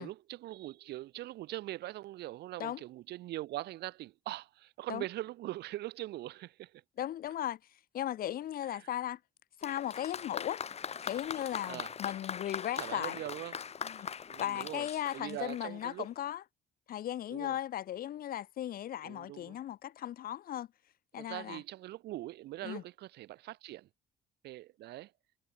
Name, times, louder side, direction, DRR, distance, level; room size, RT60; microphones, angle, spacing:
voice 1, 0.0-6.8 8.7-8.9 11.7-11.9 12.8-13.6 14.3-14.9 15.1-16.1 17.3-17.6 19.0-19.6 21.2-23.9 24.4-25.1, right 16 dB, 75° right, 6.3 m, -42 dB
voice 2, 7.0-7.6 7.9-9.2 9.6-10.6 11.0-13.2 13.8-14.1 14.4-16.4 16.9-20.7 21.1-21.6 22.6-22.8, left 11 dB, 60° left, 2.3 m, -37 dB
Applause, 9.6-16.1, left 7 dB, 40° left, 3.6 m, -41 dB
cardioid pair, 110°, 17 cm